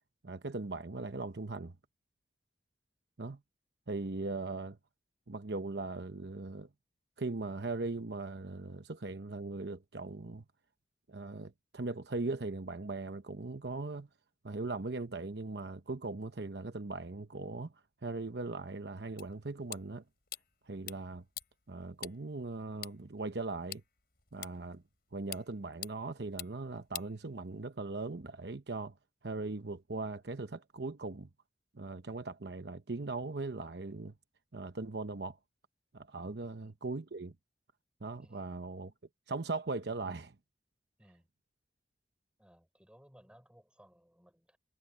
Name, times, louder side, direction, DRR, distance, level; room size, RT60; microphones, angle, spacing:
voice 1, 0.2-1.7 3.2-3.4 3.9-4.8 5.3-6.7 7.2-10.4 11.1-14.1 14.4-17.7 18.0-20.0 20.7-21.2 21.7-23.8 24.3-24.8 25.1-28.9 29.2-31.3 31.7-34.1 34.5-35.4 35.9-37.3 38.0-38.9 39.3-40.3, right 3 dB, 70° right, 0.9 m, -39 dB
sound 1, 19.2-27.8, left 12 dB, 60° left, 5.6 m, -49 dB
voice 2, 42.4-44.6, equal, 5° right, 5.9 m, -61 dB
head